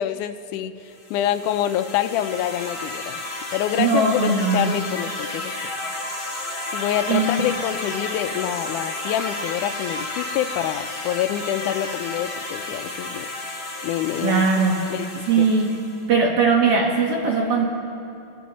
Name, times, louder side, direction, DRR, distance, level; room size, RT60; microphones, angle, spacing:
voice 1, 0.0-5.6 6.7-13.3 13.8-14.5 14.9-15.5, left 11 dB, 80° left, 10 dB, 2.0 m, -26 dB
sound 1, 1.0-16.0, left 2 dB, 60° left, 0.5 m, -32 dB
voice 2, 3.8-4.7 7.1-7.3 14.2-14.8 15.3-15.8 16.1-17.6, right 4 dB, 55° right, 0 dB, 2.0 m, -19 dB
26.5 x 10.0 x 4.1 m, 2.7 s
omnidirectional pair, 3.6 m